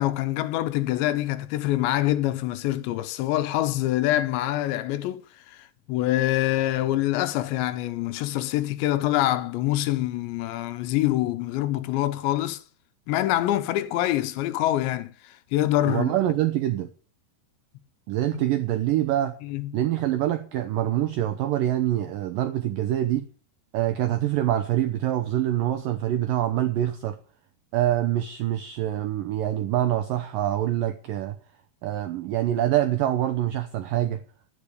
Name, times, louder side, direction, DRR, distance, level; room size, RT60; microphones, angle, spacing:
voice 1, 0.0-12.6 13.1-16.1 19.4-19.7, left 14 dB, 85° left, 3.2 m, -25 dB
voice 2, 15.9-16.9 18.1-19.4 19.7-23.3 23.7-27.2 27.7-31.4 31.8-34.2, right 13 dB, 90° right, 1.9 m, -25 dB
11.5 x 10.0 x 6.8 m
omnidirectional pair, 5.1 m